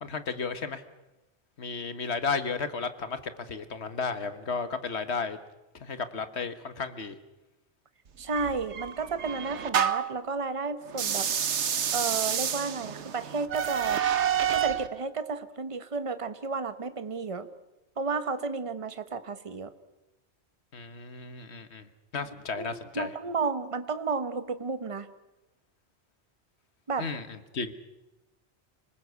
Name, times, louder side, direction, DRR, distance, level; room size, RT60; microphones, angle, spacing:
voice 1, 0.0-0.8 1.6-5.4 5.7-7.1 20.7-23.1 27.0-27.7, left 4 dB, 70° left, 11 dB, 1.7 m, -33 dB
voice 2, 8.2-11.3 11.9-14.0 14.5-17.5 18.0-19.7 22.5-22.7 22.9-25.1 26.9-27.1, right 4 dB, 30° right, 11 dB, 1.1 m, -32 dB
sound 1, 8.4-10.2 10.9-14.9, right 8 dB, 85° right, 1.3 m, -28 dB
25.5 x 19.0 x 8.1 m, 1.0 s
omnidirectional pair, 1.1 m